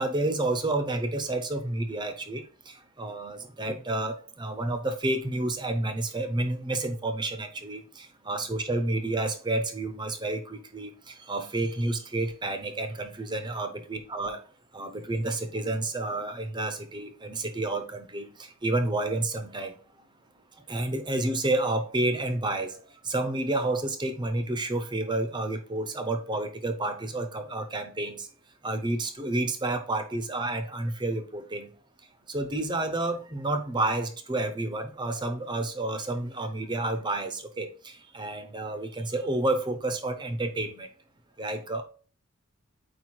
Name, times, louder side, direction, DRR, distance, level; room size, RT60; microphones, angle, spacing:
voice 1, 0.0-2.4 3.0-10.9 11.3-14.4 14.7-18.3 18.6-19.7 20.7-22.7 23.1-28.3 28.6-31.7 32.3-37.7 38.1-40.9 41.4-41.8, right 2 dB, 20° right, 8 dB, 0.7 m, -30 dB
4.7 x 4.6 x 4.4 m, 0.40 s
head